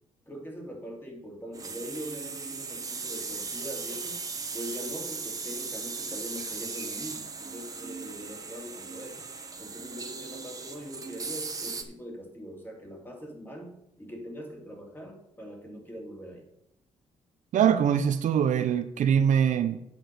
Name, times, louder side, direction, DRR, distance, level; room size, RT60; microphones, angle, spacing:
voice 1, 0.3-4.2 4.5-9.2 9.6-16.4, equal, 15° left, 1 dB, 2.7 m, -42 dB
sound 1, 1.5-11.8, right 4 dB, 25° right, 1.2 m, -37 dB
voice 2, 17.5-19.8, right 8 dB, 70° right, 9 dB, 0.8 m, -23 dB
8.7 x 6.1 x 6.3 m, 0.79 s
cardioid pair, 120°, 13 cm